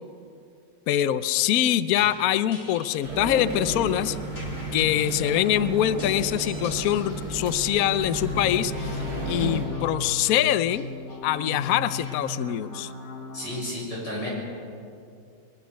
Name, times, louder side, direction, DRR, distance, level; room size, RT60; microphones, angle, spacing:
voice 1, 0.9-4.2 4.7-8.9 9.3-10.9 11.2-12.9, left 12 dB, 75° left, 14 dB, 0.8 m, -24 dB
sound 1, 2.0-3.4 4.4-5.4 6.0-7.2 8.0-13.6, left 3 dB, 35° left, 2.6 m, -37 dB
sound 2, 3.0-9.6, right 2 dB, 50° right, 7.4 m, -33 dB
voice 2, 13.3-14.3, left 1 dB, 55° left, -4 dB, 7.4 m, -32 dB
22.5 x 20.5 x 6.4 m, 2.5 s
omnidirectional pair, 2.2 m